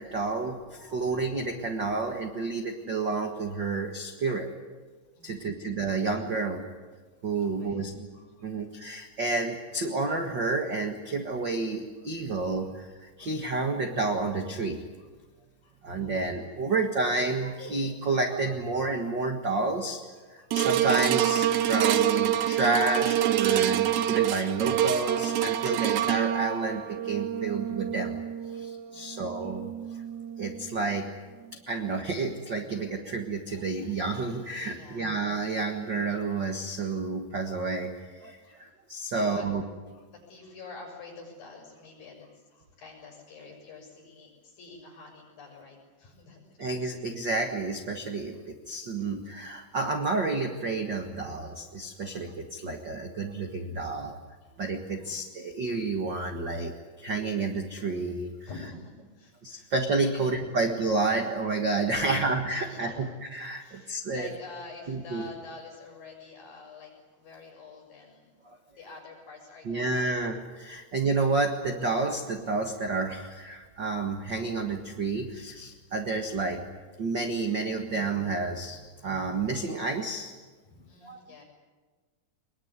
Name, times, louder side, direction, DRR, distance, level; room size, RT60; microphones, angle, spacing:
voice 1, 0.0-4.5 5.2-6.6 7.2-8.1 8.4-14.8 15.8-20.0 20.3-28.2 28.5-29.7 30.4-31.1 31.7-39.6 46.6-54.1 54.6-56.7 57.0-58.3 59.4-63.1 63.3-64.3 64.9-65.2 68.4-68.6 69.6-76.6 77.0-80.3 81.0-81.4, right 3 dB, 50° right, 4 dB, 1.3 m, -30 dB
voice 2, 2.7-3.0 5.1-5.5 5.8-5.9 7.3-7.8 8.1-8.6 12.0-12.1 12.6-12.7 13.2-13.6 15.0-15.1 15.6-16.3 20.4-20.7 25.3-25.4 27.3-27.5 28.5-29.5 29.9-30.1 31.7-31.9 32.7-32.8 34.7-35.1 37.5-37.6 38.4-38.6 39.1-39.4 39.9-46.8 49.0-49.1 54.0-54.1 54.4-54.5 54.9-55.2 58.4-59.7 60.1-60.2 62.0-63.1 63.5-66.9 67.2-68.4 68.7-69.9 80.6-81.4, left 3 dB, 60° left, 0 dB, 8.2 m, -48 dB
sound 1, 20.5-30.9 31.5-31.6, right 11 dB, 85° right, 1.6 m, -27 dB
23.0 x 21.5 x 9.6 m, 1.4 s
omnidirectional pair, 4.7 m